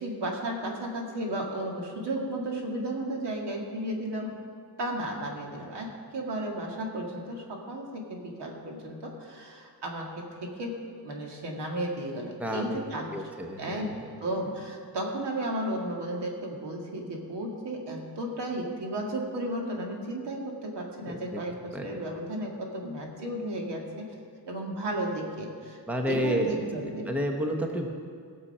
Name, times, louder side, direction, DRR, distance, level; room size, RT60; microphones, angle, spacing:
voice 1, 0.0-4.4 4.8-13.1 13.6-24.1 24.5-25.8 26.1-27.1, right 1 dB, 80° right, 0 dB, 2.2 m, -34 dB
voice 2, 12.4-12.8 13.1-14.1 21.1-21.4 21.7-21.9 25.9-27.9, equal, 5° right, 2 dB, 0.9 m, -30 dB
18.0 x 7.0 x 5.5 m, 2.1 s
wide cardioid pair, 160°, 40 cm